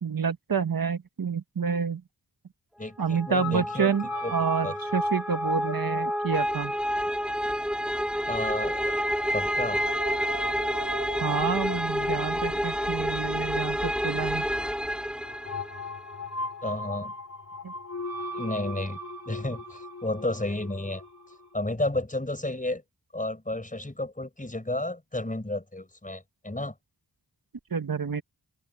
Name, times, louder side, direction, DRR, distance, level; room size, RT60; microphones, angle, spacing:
voice 1, 0.0-2.0 3.0-6.7 11.2-14.4 17.6-17.7 27.7-28.2, right 6 dB, 60° right, 1.4 m, -28 dB
voice 2, 2.8-3.9 4.2-4.3 4.6-4.8 8.3-9.0 9.3-9.8 10.3-10.4 16.6-17.1 18.3-19.0 19.3-21.0 21.5-22.8 23.1-26.7, left 1 dB, 20° left, 5.5 m, -32 dB
sound 1, 3.0-15.8, equal, ahead, 4.5 m, -29 dB
sound 2, 3.4-21.5, left 1 dB, 45° left, 3.6 m, -40 dB
open air
wide cardioid pair, 65°, 39 cm